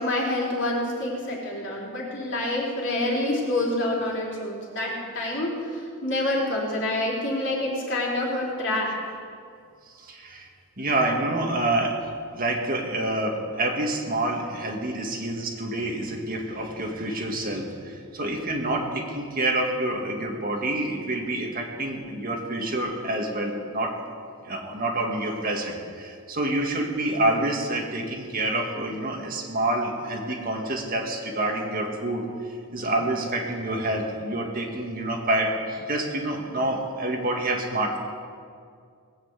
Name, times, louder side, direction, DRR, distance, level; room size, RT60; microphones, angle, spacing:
voice 1, 0.0-8.9, left 1 dB, 55° left, -4 dB, 3.9 m, -27 dB
voice 2, 9.9-10.5 10.8-12.0 12.4-24.0 24.4-32.2 32.7-38.0, right 1 dB, 40° right, 1 dB, 1.9 m, -27 dB
19.5 x 8.0 x 8.2 m, 2.2 s
head